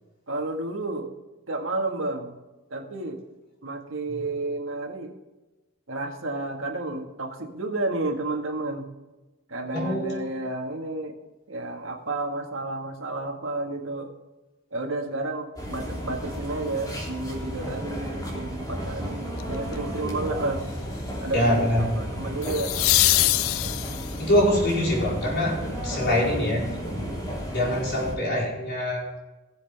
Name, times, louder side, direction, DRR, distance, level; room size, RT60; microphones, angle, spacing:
voice 1, 0.3-1.1 1.5-2.4 2.7-3.2 3.6-5.1 5.9-8.9 9.5-11.2 11.5-14.1 14.7-20.6 21.2-21.7 22.0-22.7, right 2 dB, 70° right, 3 dB, 1.8 m, -31 dB
voice 2, 9.7-10.3 21.3-22.0 24.2-26.7 27.5-29.0, left 1 dB, 55° left, -4 dB, 4.7 m, -24 dB
sound 1, 15.6-28.2, equal, 20° left, 3.0 m, -33 dB
sound 2, 19.4-19.7 22.4-24.3 27.2-27.3, left 17 dB, 80° left, 0.4 m, -23 dB
19.0 x 7.6 x 3.5 m, 1.1 s
head